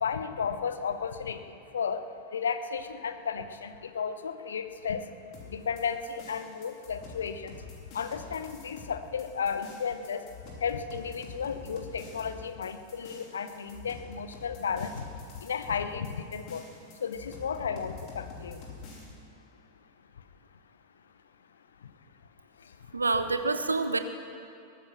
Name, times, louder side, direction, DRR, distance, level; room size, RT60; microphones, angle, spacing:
voice 1, 0.0-1.4 1.7-2.0 2.3-5.0 5.5-7.5 7.9-10.2 10.6-15.0 15.4-16.6 17.0-18.6, left 6 dB, 70° left, 10 dB, 0.8 m, -33 dB
sound 1, 5.3-19.0, left 4 dB, 40° left, 3.1 m, -47 dB
voice 2, 22.9-24.0, right 3 dB, 80° right, 9 dB, 0.8 m, -27 dB
20.5 x 9.3 x 5.8 m, 2.6 s
figure-of-eight pair, 90°, 0 cm